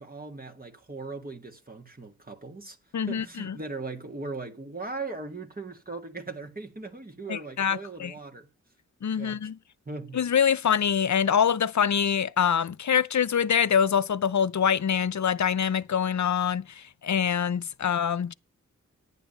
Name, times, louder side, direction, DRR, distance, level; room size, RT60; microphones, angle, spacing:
voice 1, 0.0-2.8 3.1-8.5 9.2-9.5 9.9-10.2 17.8-17.9, right 3 dB, 30° right, 2.0 m, -39 dB
voice 2, 2.9-3.6 7.3-8.1 9.0-9.6 10.1-18.3, left 8 dB, 70° left, 0.7 m, -25 dB
10.5 x 9.1 x 5.5 m
wide cardioid pair, 60°, 30 cm